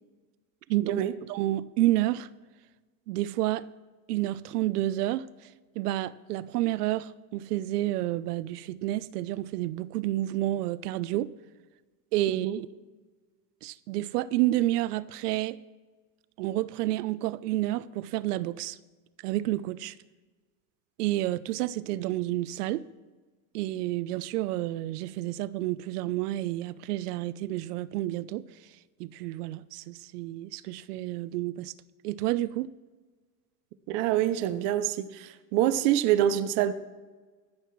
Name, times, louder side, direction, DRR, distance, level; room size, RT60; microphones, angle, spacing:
voice 1, 0.7-1.0 1.3-2.3 3.1-3.7 4.1-11.3 12.1-12.5 13.6-15.6 16.4-18.8 19.2-20.0 21.0-22.9 23.5-31.7 32.0-32.7, right 15 dB, 85° right, 0.7 m, -30 dB
voice 2, 12.3-12.6 33.9-36.7, right 12 dB, 30° right, 0.4 m, -26 dB
17.0 x 13.0 x 3.1 m
supercardioid pair, 170°, 45 cm